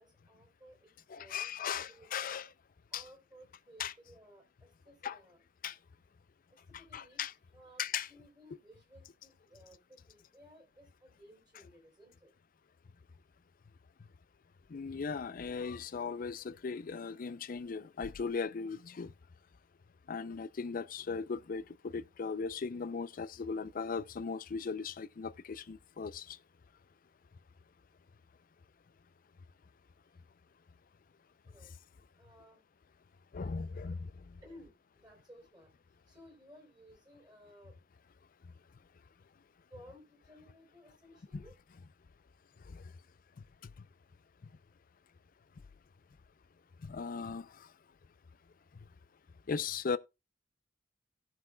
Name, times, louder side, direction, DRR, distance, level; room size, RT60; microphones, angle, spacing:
voice 1, 0.0-2.4 2.9-5.4 6.5-7.2 7.5-12.3 31.5-31.7 32.2-32.6 34.4-37.8 39.7-41.5, equal, 20° right, 3.7 m, -58 dB
voice 2, 1.1-2.5 2.9-3.0 3.8-3.9 5.0-5.2 5.6-5.8 6.7-7.3 7.8-8.1 14.7-19.1 20.1-26.4 33.3-34.3 41.3-41.4 42.6-42.8 43.6-43.7 46.8-47.7 49.5-50.0, left 5 dB, 50° left, 0.4 m, -38 dB
17.0 x 5.8 x 2.2 m
head